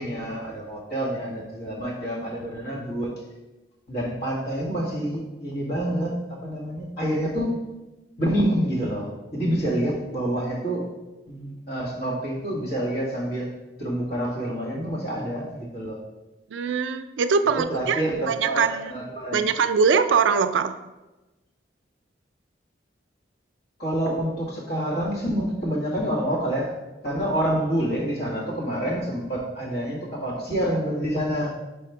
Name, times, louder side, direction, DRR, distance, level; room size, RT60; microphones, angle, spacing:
voice 1, 0.0-3.1 3.9-7.6 8.2-10.9 11.3-13.5 13.8-16.0 17.7-19.4 23.8-26.7 27.0-31.5, right 1 dB, 60° left, -4 dB, 1.7 m, -27 dB
voice 2, 16.5-19.0 19.3-20.8, right 5 dB, 80° right, 8 dB, 0.4 m, -22 dB
4.9 x 4.3 x 4.6 m, 1.1 s
head